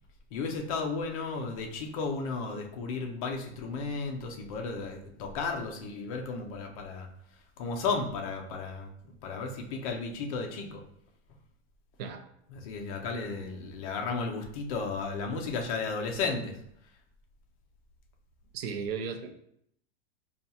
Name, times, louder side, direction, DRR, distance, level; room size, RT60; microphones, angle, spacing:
voice 1, 0.3-7.1 7.6-8.9 9.2-10.8 12.5-16.5, left 4 dB, 35° left, 2 dB, 0.4 m, -34 dB
voice 2, 18.5-19.3, right 6 dB, 60° right, 7 dB, 0.5 m, -35 dB
5.0 x 2.3 x 2.7 m, 0.72 s
supercardioid pair, 170°, 33 cm